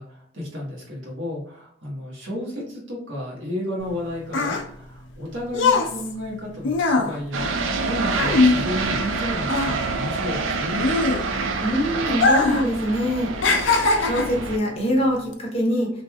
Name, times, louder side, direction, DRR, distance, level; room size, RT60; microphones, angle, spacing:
voice 1, 0.0-7.5 7.8-10.8, left 1 dB, 70° right, -4 dB, 1.3 m, -32 dB
sound 1, 3.8-9.2 9.4-11.6 12.1-12.7 13.0-14.4 15.1-15.3, left 3 dB, 70° left, 0.5 m, -21 dB
sound 2, 7.3-14.6, right 3 dB, 85° right, 0.4 m, -27 dB
voice 2, 11.6-13.3 14.0-15.9, equal, 30° left, -2 dB, 0.8 m, -23 dB
3.2 x 2.6 x 2.2 m, 0.69 s
head